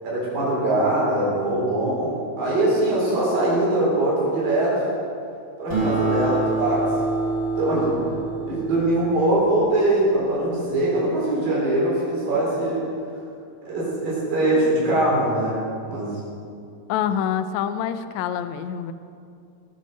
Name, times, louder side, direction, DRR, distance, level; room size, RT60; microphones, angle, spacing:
voice 1, 0.0-4.9 5.6-6.9 7.6-8.0 8.5-12.9 13.7-15.6 15.8-16.1, right 1 dB, 85° right, -6 dB, 6.0 m, -22 dB
Acoustic guitar, 5.7-10.5, right 3 dB, 25° right, 5.1 m, -27 dB
voice 2, 16.9-18.9, left 9 dB, 80° left, 10 dB, 1.6 m, -26 dB
19.0 x 8.4 x 6.6 m, 2.4 s
omnidirectional pair, 4.0 m